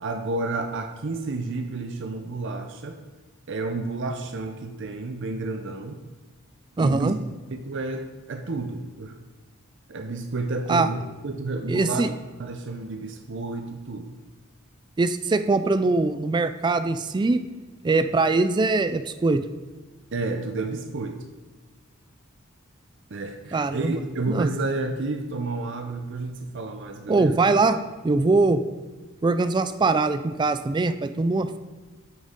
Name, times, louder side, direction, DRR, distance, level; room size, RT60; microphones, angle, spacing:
voice 1, 0.0-3.0 3.5-6.0 6.8-7.1 7.5-9.1 9.9-12.1 12.4-14.1 20.1-21.2 23.1-27.5, right 3 dB, 60° right, 5 dB, 0.6 m, -31 dB
voice 2, 6.8-7.2 10.7-10.9 11.7-12.1 15.0-17.4 17.8-19.4 23.5-23.9 24.3-24.5 27.1-27.8 28.0-28.6 29.2-31.6, right 3 dB, 20° right, 11 dB, 0.3 m, -22 dB
8.8 x 6.4 x 3.7 m, 1.3 s
head